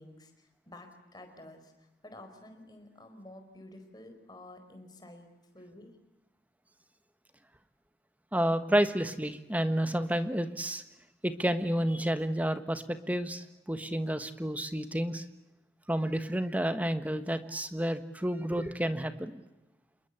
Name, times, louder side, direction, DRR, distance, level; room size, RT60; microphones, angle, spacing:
voice 1, 0.0-5.3 5.5-6.0, left 1 dB, 20° left, 6 dB, 4.7 m, -51 dB
voice 2, 8.3-10.8 11.2-15.2 15.9-19.4, right 1 dB, 10° right, 9 dB, 1.4 m, -30 dB
28.0 x 21.5 x 8.3 m, 0.97 s
head